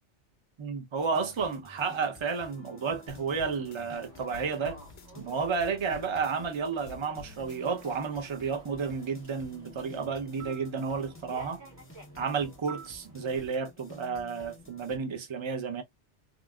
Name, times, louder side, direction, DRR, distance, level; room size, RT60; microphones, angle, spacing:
voice 1, 0.6-4.8 5.1-11.6 12.2-15.8, right 5 dB, 35° right, 0.6 m, -32 dB
sound 1, 1.0-15.0, left 2 dB, 15° left, 0.4 m, -53 dB
sound 2, 3.1-5.3 5.6-7.9, left 5 dB, 70° left, 0.8 m, -50 dB
Human voice / Subway metro underground, 4.0-13.4, right 3 dB, 70° right, 1.8 m, -51 dB
3.7 x 2.1 x 2.2 m
omnidirectional pair, 1.2 m